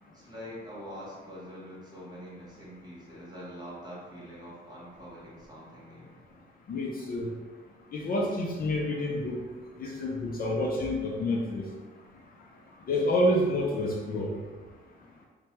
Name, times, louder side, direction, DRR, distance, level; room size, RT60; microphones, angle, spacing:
voice 1, 0.1-6.2, equal, 20° right, -7 dB, 1.4 m, -44 dB
voice 2, 6.7-7.3 7.9-9.4 9.8-11.7 12.9-14.4, left 1 dB, 45° left, -1 dB, 0.5 m, -28 dB
2.8 x 2.2 x 3.1 m, 1.4 s
cardioid pair, 90°, 20 cm